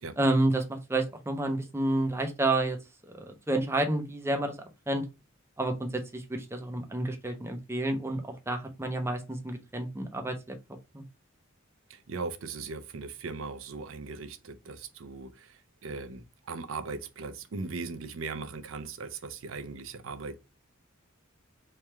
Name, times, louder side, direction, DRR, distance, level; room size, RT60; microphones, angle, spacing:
voice 1, 0.2-2.8 3.3-4.5 4.9-5.0 5.6-5.9 6.1-8.2 8.5-10.3 10.9-11.0, right 2 dB, 15° right, 0.6 m, -29 dB
voice 2, 11.9-20.4, right 4 dB, 80° right, 0.5 m, -39 dB
3.2 x 2.3 x 4.1 m
head